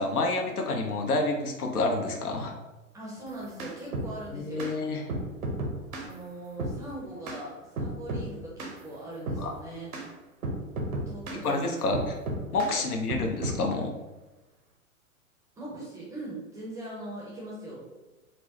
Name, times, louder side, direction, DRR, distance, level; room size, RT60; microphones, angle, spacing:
voice 1, 0.0-2.6 4.3-5.0 9.4-9.5 11.4-12.0 12.5-13.9, left 3 dB, 90° left, 2 dB, 0.8 m, -28 dB
voice 2, 2.9-4.7 5.9-10.0 11.1-11.8 12.7-12.8 15.6-17.9, right 1 dB, 10° right, -5 dB, 0.5 m, -41 dB
sound 1, 3.3-4.1 4.6-4.7 5.1-6.1 6.6-6.8 7.3-7.4 7.8-8.3 8.6-8.8 9.3-9.5 9.9-10.1 10.4-11.4 11.9-12.7 13.1-13.6, right 2 dB, 75° right, 1.0 m, -33 dB
4.5 x 2.0 x 2.9 m, 1.1 s
hypercardioid pair, 120°, 44 cm